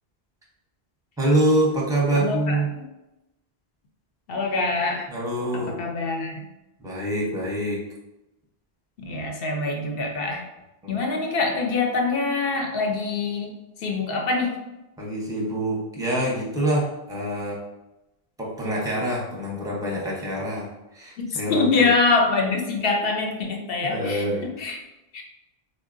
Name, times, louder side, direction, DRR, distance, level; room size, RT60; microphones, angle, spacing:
voice 1, 1.2-2.7 5.1-5.8 6.8-7.8 10.8-10.9 15.0-17.6 18.4-21.9 23.8-24.4, right 1 dB, 5° right, -4 dB, 0.5 m, -25 dB
voice 2, 2.1-2.8 4.3-5.1 5.5-6.5 9.0-10.5 10.9-13.5 13.8-14.6 21.2-24.8 25.1-25.2, left 3 dB, 70° left, 1 dB, 0.7 m, -25 dB
3.6 x 2.1 x 2.4 m, 0.95 s
omnidirectional pair, 1.0 m